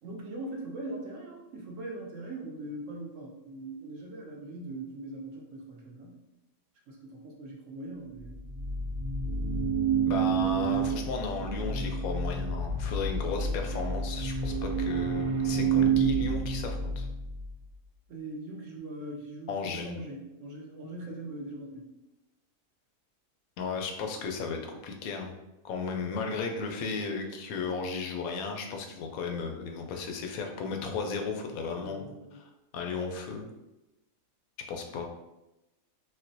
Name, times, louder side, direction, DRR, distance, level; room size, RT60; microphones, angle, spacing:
voice 1, 0.0-6.2 6.9-8.4 18.1-21.9 31.7-32.4, right 2 dB, 70° right, -1 dB, 1.0 m, -41 dB
sound 1, 8.2-17.5, right 5 dB, 40° right, 0.4 m, -29 dB
voice 2, 10.1-17.1 19.5-19.9 23.6-25.3 25.6-32.4 32.7-33.5 34.7-35.1, left 4 dB, 90° left, 3 dB, 1.0 m, -35 dB
4.3 x 2.1 x 2.6 m, 0.94 s
omnidirectional pair, 1.4 m